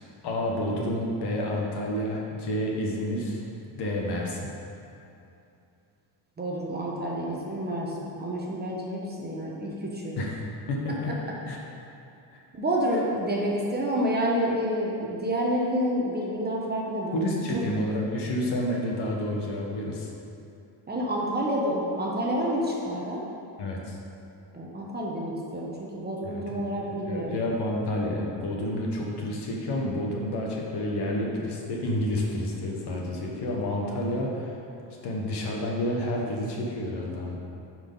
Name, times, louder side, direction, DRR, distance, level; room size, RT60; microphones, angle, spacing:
voice 1, 0.2-3.4 3.7-4.5 10.2-11.1 11.5-11.6 12.3-12.4 17.1-20.1 23.6-24.0 26.2-26.6 27.1-34.6 35.0-37.4, left 1 dB, 55° left, -1 dB, 1.4 m, -29 dB
voice 2, 6.4-10.2 12.5-17.2 17.5-17.6 20.9-23.3 24.5-27.4, equal, 20° right, -3 dB, 0.9 m, -29 dB
9.1 x 4.7 x 3.9 m, 2.7 s
cardioid pair, 130°, 48 cm